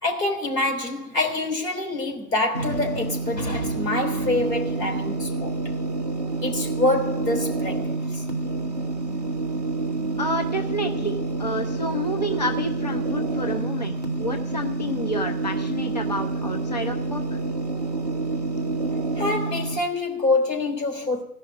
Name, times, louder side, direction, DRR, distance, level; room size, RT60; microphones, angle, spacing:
voice 1, 0.0-5.7 6.4-8.3 19.2-21.2, left 2 dB, 85° left, 3.4 m, -26 dB
sound 1, 2.5-19.8, right 3 dB, 30° right, 0.5 m, -28 dB
voice 2, 10.2-17.4, equal, 30° left, 0.4 m, -29 dB
16.0 x 5.7 x 9.3 m
figure-of-eight pair, 155°, 47 cm